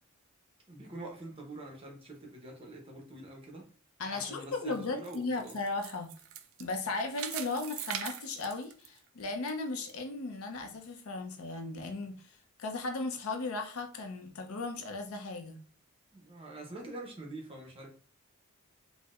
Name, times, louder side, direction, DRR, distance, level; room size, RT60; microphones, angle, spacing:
voice 1, 0.7-3.7 4.1-5.6 16.1-17.9, right 2 dB, 25° right, 1 dB, 0.7 m, -45 dB
voice 2, 4.0-6.1 6.6-12.3 12.6-15.6, left 3 dB, 85° left, 5 dB, 0.5 m, -36 dB
sound 1, 4.6-9.5 9.9-10.0 10.6-10.7, right 9 dB, 70° right, 0.3 m, -42 dB
4.2 x 2.1 x 2.3 m, 0.43 s
head